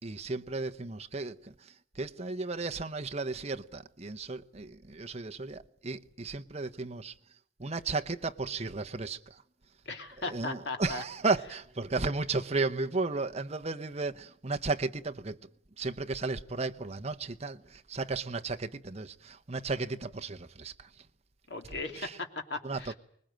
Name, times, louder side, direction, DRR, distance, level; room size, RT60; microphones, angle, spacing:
voice 1, 0.0-7.1 7.6-9.4 10.2-15.4 15.8-20.9 22.0-22.1 22.6-22.9, right 3 dB, 35° right, 1.0 m, -34 dB
voice 2, 9.8-11.0 21.5-22.9, left 3 dB, 65° left, 2.9 m, -37 dB
24.5 x 20.5 x 9.1 m
head